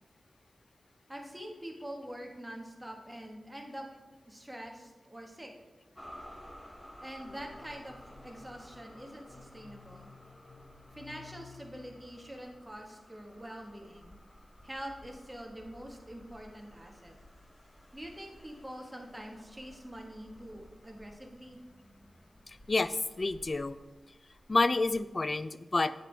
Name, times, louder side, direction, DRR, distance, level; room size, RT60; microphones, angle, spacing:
voice 1, 1.1-3.9 4.3-5.5 7.0-10.1 10.9-14.2 14.6-17.2 17.9-21.6, equal, 10° right, 1 dB, 1.3 m, -45 dB
sound 1, 5.9-25.1, equal, 10° left, 0.9 m, -55 dB
sound 2, 7.3-12.6, left 5 dB, 75° left, 0.6 m, -56 dB
voice 2, 22.5-23.8 24.5-25.9, left 3 dB, 40° left, 14 dB, 0.3 m, -29 dB
8.3 x 7.5 x 3.3 m, 1.2 s
wide cardioid pair, 85°, 0 cm